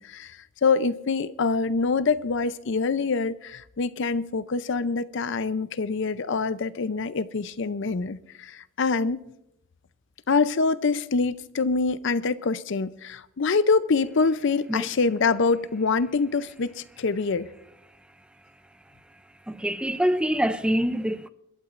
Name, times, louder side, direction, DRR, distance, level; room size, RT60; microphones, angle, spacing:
voice 1, 0.0-9.2 10.3-17.5, left 4 dB, 60° left, 0.5 m, -25 dB
voice 2, 19.5-21.3, equal, 5° right, 0.4 m, -25 dB
27.5 x 12.0 x 2.5 m
head